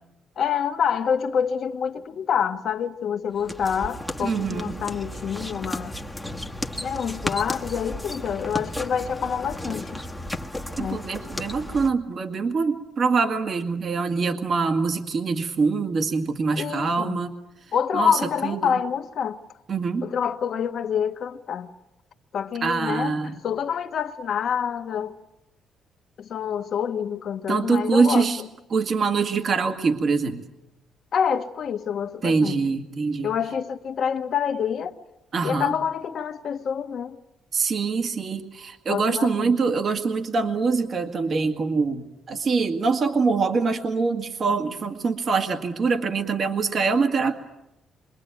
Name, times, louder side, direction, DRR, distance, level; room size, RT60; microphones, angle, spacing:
voice 1, 0.4-5.9 6.8-10.0 10.8-11.0 16.6-17.2 17.7-19.4 20.0-21.7 22.3-25.1 26.2-28.5 31.1-32.6 33.2-34.9 35.4-37.2 38.9-39.6, left 7 dB, 55° left, 1.5 m, -27 dB
sound 1, 3.3-11.9, left 1 dB, 5° left, 1.5 m, -34 dB
voice 2, 4.2-4.7 10.8-17.3 17.9-18.7 19.7-20.1 22.6-23.4 27.5-28.4 28.7-30.4 32.2-33.3 35.3-35.7 37.5-47.4, right 4 dB, 45° right, 2.0 m, -24 dB
27.0 x 23.5 x 9.2 m
cardioid pair, 120°, 0 cm